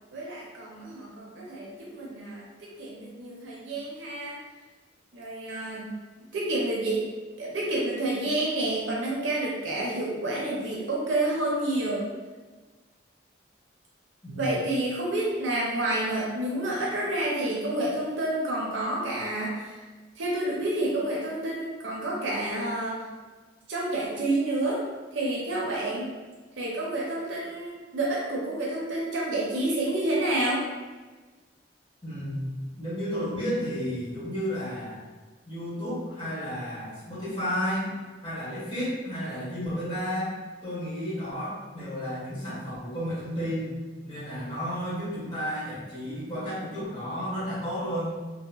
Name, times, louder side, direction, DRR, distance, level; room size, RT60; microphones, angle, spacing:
voice 1, 0.1-4.4 5.1-6.0 6.3-7.0 7.4-12.1 14.4-19.8 20.2-23.0 23.7-24.8 25.1-26.1 26.6-30.7, right 1 dB, 85° right, -3 dB, 0.5 m, -29 dB
voice 2, 32.0-35.0 35.5-40.3 40.6-43.7 44.0-48.2, equal, 25° left, -10 dB, 1.4 m, -32 dB
2.9 x 2.7 x 2.3 m, 1.3 s
head